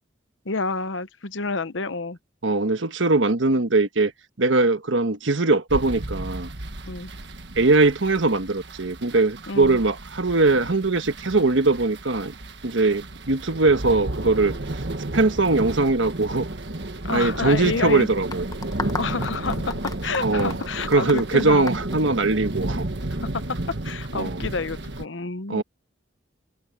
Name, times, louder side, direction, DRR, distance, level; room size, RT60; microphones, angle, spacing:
voice 1, 0.4-2.2 6.9-7.1 9.5-9.8 17.0-18.1 19.0-21.7 23.3-25.6, left 3 dB, 80° left, 1.0 m, -29 dB
voice 2, 2.4-4.1 4.4-6.5 7.6-12.3 12.6-14.5 15.1-16.5 17.1-18.5 20.2-20.5 20.9-22.9 24.1-24.4 25.5-25.6, right 3 dB, 80° right, 1.3 m, -21 dB
sound 1, 5.7-25.1, right 1 dB, 65° right, 1.5 m, -33 dB
Light slow uncomfortable clapping, 18.3-22.7, left 3 dB, 20° left, 1.2 m, -34 dB
head